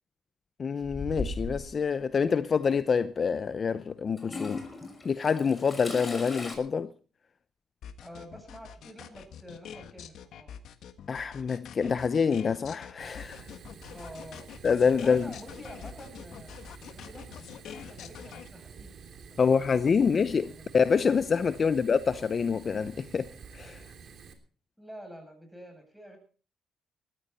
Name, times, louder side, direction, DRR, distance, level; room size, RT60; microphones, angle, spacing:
voice 1, 0.6-4.7 5.0-6.9 11.1-13.4 14.6-15.3 19.4-23.8, left 6 dB, 45° left, 0.8 m, -26 dB
Toilet flush / Trickle dribble, 0.8-1.7 2.8-2.9 4.2-6.6, left 2 dB, 25° left, 5.8 m, -38 dB
sound 1, 7.8-18.5, left 8 dB, 75° left, 1.5 m, -45 dB
voice 2, 8.0-10.6 13.9-14.5 15.0-16.5 16.9-20.8 21.6-21.8 24.8-26.2, equal, ahead, 7.9 m, -48 dB
Fire, 13.0-24.3, right 6 dB, 60° right, 3.1 m, -49 dB
19.5 x 14.0 x 4.3 m
cardioid pair, 90°, 0 cm